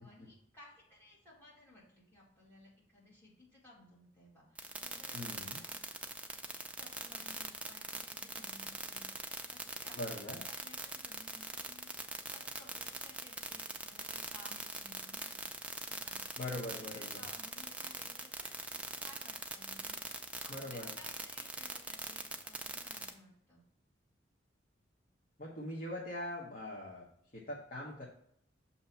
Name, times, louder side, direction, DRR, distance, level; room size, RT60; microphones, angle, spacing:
voice 1, 0.0-5.8 6.7-23.6, left 1 dB, 10° left, -6 dB, 2.3 m, -59 dB
sound 1, 4.6-23.1, right 2 dB, 5° right, 0.4 m, -42 dB
voice 2, 5.1-5.6 9.9-10.4 16.4-17.2 20.5-20.9 25.4-27.1 27.3-28.0, left 1 dB, 45° left, -4 dB, 1.1 m, -42 dB
6.8 x 2.9 x 5.5 m, 0.69 s
head